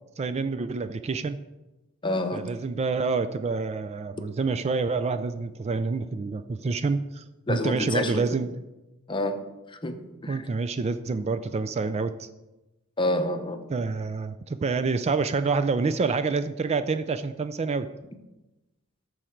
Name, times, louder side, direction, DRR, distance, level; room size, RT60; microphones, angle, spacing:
voice 1, 0.2-1.4 2.3-8.5 10.3-12.3 13.7-17.9, right 4 dB, 30° right, 11 dB, 0.3 m, -27 dB
voice 2, 2.0-2.5 7.5-8.3 9.1-9.4 9.8-10.4 13.0-13.7, left 1 dB, 25° left, 8 dB, 0.7 m, -28 dB
13.5 x 5.0 x 4.5 m, 1.0 s
head